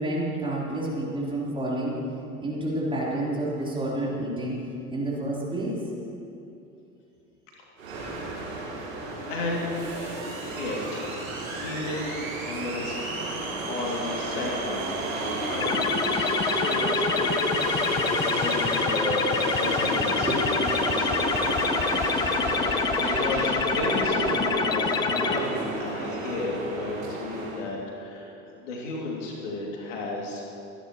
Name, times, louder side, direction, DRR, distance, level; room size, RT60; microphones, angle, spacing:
voice 1, 0.0-2.0 2.4-5.8 20.2-20.6, right 1 dB, 10° right, -6 dB, 3.8 m, -29 dB
sound 1, 7.8-27.6, right 2 dB, 70° right, 3.0 m, -31 dB
voice 2, 7.9-8.5 9.0-13.0 13.7-15.9 16.4-17.3 18.4-20.3 20.6-21.3 22.6-28.3 28.6-30.4, left 2 dB, 60° left, -2 dB, 2.7 m, -34 dB
sound 2, 15.6-25.4, left 6 dB, 10° left, 0.3 m, -26 dB
25.5 x 10.5 x 3.1 m, 2.8 s
figure-of-eight pair, 80°, 42 cm